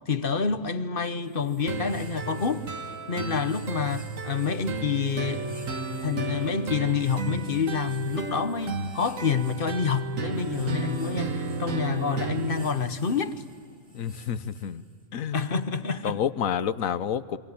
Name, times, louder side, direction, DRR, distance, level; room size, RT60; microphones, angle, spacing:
voice 1, 0.1-2.7 3.1-5.5 6.0-13.4 15.3-16.2, left 5 dB, 45° left, 1.2 m, -28 dB
sound 1, 1.2-15.1, right 3 dB, 35° right, 3.4 m, -49 dB
sound 2, 1.7-12.7, right 4 dB, 80° right, 1.9 m, -33 dB
voice 2, 13.9-14.8 15.1-15.5 16.0-17.4, left 8 dB, 85° left, 1.3 m, -29 dB
28.0 x 24.0 x 8.5 m
omnidirectional pair, 1.4 m